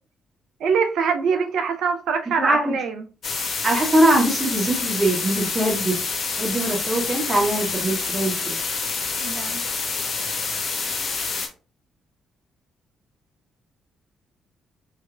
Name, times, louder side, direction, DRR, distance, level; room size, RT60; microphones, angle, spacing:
voice 1, 0.6-3.1 9.2-9.6, right 6 dB, 65° right, 0.5 m, -24 dB
voice 2, 2.4-2.7 3.6-8.6, right 1 dB, 30° right, 1.6 m, -22 dB
sound 1, 3.2-11.5, left 4 dB, 50° left, 0.9 m, -27 dB
3.4 x 3.2 x 2.3 m
hypercardioid pair, 45°, 0 cm